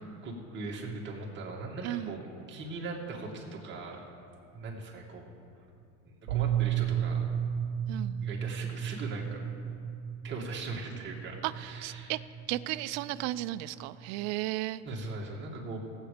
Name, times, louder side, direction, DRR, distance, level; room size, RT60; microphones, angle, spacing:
voice 1, 0.0-2.2 2.5-4.0 4.5-5.3 6.3-7.3 8.2-9.5 10.2-12.1 14.8-15.8, right 3 dB, 30° right, -2 dB, 2.3 m, -40 dB
voice 2, 1.8-2.2 7.9-8.3 11.4-12.2 12.5-14.8, right 16 dB, 45° right, 14 dB, 0.4 m, -34 dB
sound 1, 6.3-14.3, right 9 dB, 90° right, 1.0 m, -34 dB
17.0 x 8.2 x 5.0 m, 2.6 s
supercardioid pair, 125°, 39 cm